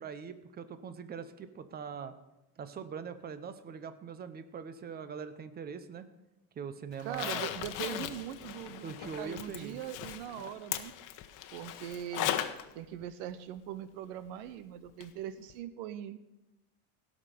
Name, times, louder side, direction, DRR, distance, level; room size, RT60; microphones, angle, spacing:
voice 1, 0.0-2.1 2.6-6.1 6.6-7.5 8.8-9.8, right 6 dB, 25° right, 11 dB, 0.9 m, -42 dB
Zipper (clothing), 7.0-12.6 13.0-13.1 15.0-15.1 15.5-15.6, left 12 dB, 55° left, 1.1 m, -38 dB
voice 2, 7.0-10.9 11.5-12.4 12.7-16.2, right 11 dB, 70° right, 13 dB, 0.9 m, -41 dB
16.0 x 6.3 x 6.7 m, 0.97 s
supercardioid pair, 135°, 38 cm